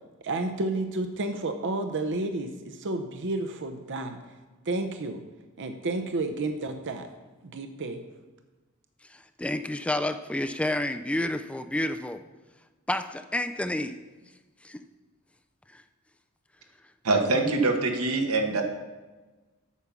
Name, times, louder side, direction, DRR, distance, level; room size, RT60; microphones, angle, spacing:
voice 1, 0.2-4.2 4.7-5.2 5.6-7.1 7.4-8.0, right 2 dB, 55° right, 7 dB, 0.7 m, -31 dB
voice 2, 9.4-12.2 12.9-14.0 14.6-14.8 15.7-15.8, left 1 dB, 5° left, 8 dB, 0.3 m, -29 dB
voice 3, 17.0-18.6, right 3 dB, 80° right, 3 dB, 1.4 m, -24 dB
8.4 x 6.9 x 6.0 m, 1.2 s
head